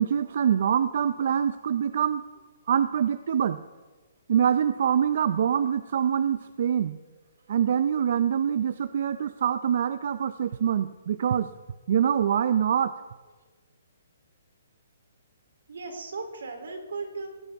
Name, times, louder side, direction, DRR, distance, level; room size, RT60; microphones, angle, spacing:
voice 1, 0.0-2.2 2.7-3.6 4.3-7.0 7.5-11.5 11.9-12.9, right 8 dB, 55° right, 13 dB, 0.5 m, -24 dB
voice 2, 15.7-17.3, right 4 dB, 80° right, 5 dB, 3.3 m, -36 dB
17.5 x 16.0 x 3.6 m, 1.3 s
hypercardioid pair, 165°, 0 cm